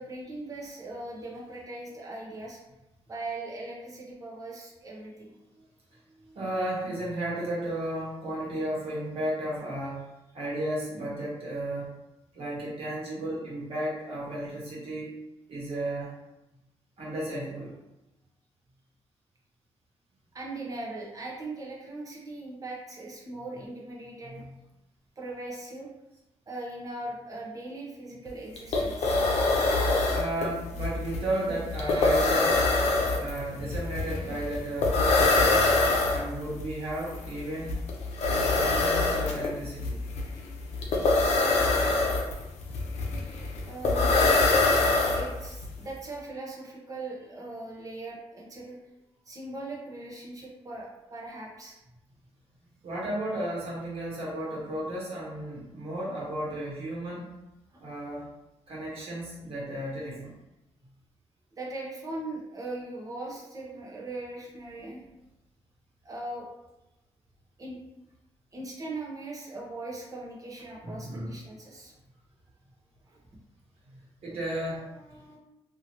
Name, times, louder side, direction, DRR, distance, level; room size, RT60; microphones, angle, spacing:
voice 1, 0.0-2.6 3.1-5.1 20.3-24.4 25.2-25.9 26.5-29.2 42.7-43.1 43.7-44.3 45.1-48.8 49.3-51.8 61.6-65.0 66.0-66.5 67.6-67.8 68.5-71.9 73.1-73.2, right 2 dB, 30° right, -3 dB, 0.9 m, -39 dB
voice 2, 6.2-10.0 10.3-11.9 12.3-15.1 15.5-16.1 17.0-17.8 24.2-24.5 30.1-32.6 33.1-35.7 36.1-37.7 38.3-40.0 52.8-57.3 57.8-58.3 58.7-60.3 70.8-71.3 73.9-75.4, right 1 dB, 60° right, -6 dB, 1.3 m, -34 dB
sound 1, 28.3-28.4 28.6-45.6, left 3 dB, 75° left, 0.6 m, -25 dB
2.9 x 2.7 x 2.9 m, 0.95 s
cardioid pair, 115°, 11 cm